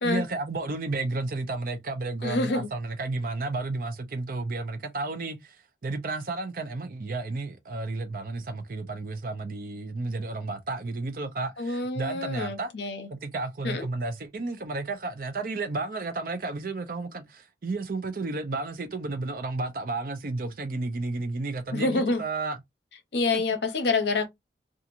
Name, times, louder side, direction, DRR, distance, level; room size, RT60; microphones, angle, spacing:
voice 1, 0.0-5.6 5.8-12.7 13.1-22.6, right 3 dB, 50° right, 0.5 m, -32 dB
voice 2, 2.2-2.7 11.6-13.1 13.6-13.8 21.7-22.2 23.1-24.3, left 3 dB, 70° left, 0.7 m, -27 dB
2.8 x 2.4 x 2.4 m
head